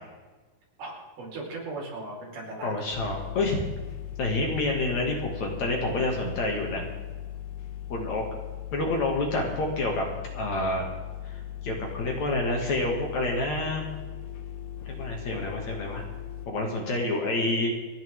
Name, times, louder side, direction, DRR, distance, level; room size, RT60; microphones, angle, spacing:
voice 1, 0.8-2.9, right 2 dB, 75° right, -3 dB, 6.8 m, -38 dB
voice 2, 2.6-3.6 4.2-6.8 7.9-8.2 8.7-10.1 10.3-10.8 11.2-11.4 11.6-13.8 14.9-16.0 16.5-17.7, left 2 dB, 50° left, 0 dB, 3.4 m, -28 dB
sound 1, 2.9-16.5, left 11 dB, 80° left, 3.3 m, -39 dB
29.5 x 10.5 x 3.7 m, 1.3 s
omnidirectional pair, 4.4 m